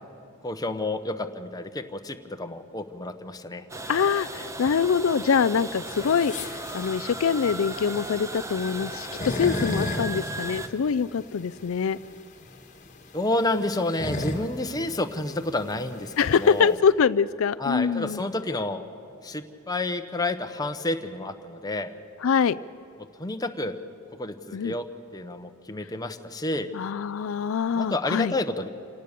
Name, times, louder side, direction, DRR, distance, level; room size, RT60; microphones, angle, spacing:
voice 1, 0.4-3.6 13.1-16.8 17.6-18.8 19.2-21.9 23.2-23.8 24.2-24.8 25.1-26.7 27.7-28.7, left 2 dB, 20° left, 7 dB, 1.0 m, -30 dB
sound 1, 3.7-10.7, right 1 dB, 15° right, 0.9 m, -36 dB
voice 2, 3.9-12.0 16.2-18.2 22.2-22.6 24.5-24.7 26.7-28.3, left 6 dB, 70° left, 14 dB, 0.4 m, -24 dB
sound 2, 5.9-16.8, left 2 dB, 35° left, 1.6 m, -35 dB
27.5 x 18.0 x 6.8 m, 3.0 s
head